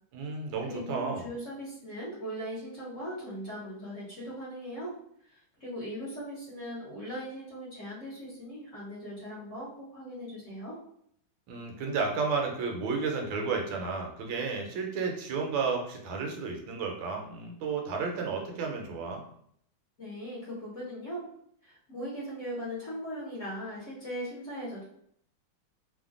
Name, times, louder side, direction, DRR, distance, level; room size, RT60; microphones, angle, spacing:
voice 1, 0.1-1.3 11.5-19.2, right 4 dB, 75° right, 1 dB, 1.3 m, -32 dB
voice 2, 0.7-4.9 5.2-10.8 20.0-21.2 21.6-24.8, equal, 55° left, -8 dB, 0.9 m, -39 dB
3.2 x 2.1 x 2.4 m, 0.68 s
omnidirectional pair, 2.2 m